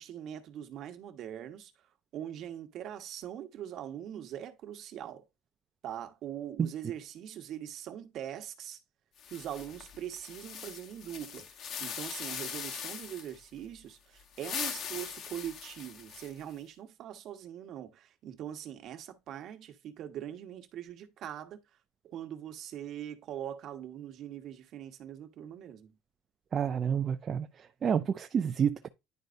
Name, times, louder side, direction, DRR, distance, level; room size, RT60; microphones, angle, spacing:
voice 1, 0.0-1.7 2.1-5.3 5.8-8.8 9.3-21.6 22.0-25.9, right 10 dB, 55° right, 1.3 m, -42 dB
sound 1, 9.2-13.4 14.2-16.5, left 7 dB, 50° left, 1.1 m, -41 dB
voice 2, 26.5-27.5 27.8-28.9, right 7 dB, 40° right, 0.5 m, -29 dB
10.5 x 4.0 x 2.6 m
supercardioid pair, 85°, 0 cm